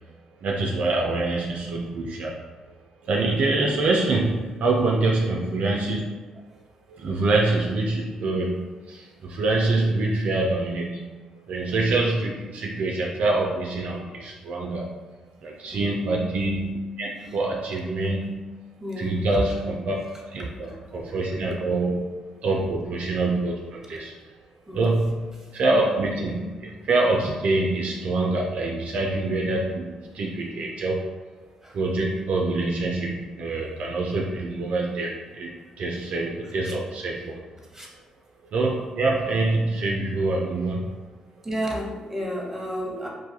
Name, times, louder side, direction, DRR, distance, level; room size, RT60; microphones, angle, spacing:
voice 1, 0.4-2.4 3.0-6.0 6.9-14.9 15.4-18.3 19.0-20.0 20.3-22.0 22.4-24.2 24.7-31.1 31.7-37.4 38.5-41.0, right 2 dB, 60° right, -1 dB, 0.3 m, -25 dB
voice 2, 18.8-19.2 20.4-20.8 24.7-24.8 25.4-25.5 31.6-31.8 36.6-36.7 37.6-37.9 41.4-43.1, equal, 10° right, -2 dB, 0.8 m, -32 dB
2.4 x 2.3 x 2.7 m, 1.3 s
hypercardioid pair, 45°, 3 cm